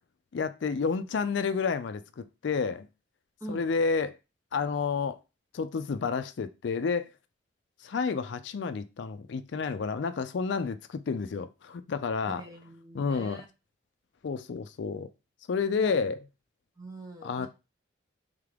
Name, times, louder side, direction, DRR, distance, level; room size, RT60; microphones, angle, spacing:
voice 1, 0.3-2.9 3.5-4.2 4.5-5.2 5.5-7.1 7.8-12.4 12.9-13.4 14.2-15.1 15.5-16.2 17.2-17.5, left 5 dB, 65° left, 0.4 m, -30 dB
voice 2, 12.3-13.5 15.8-15.9 16.8-17.5, right 2 dB, 20° right, 1.0 m, -43 dB
3.6 x 3.6 x 3.4 m
head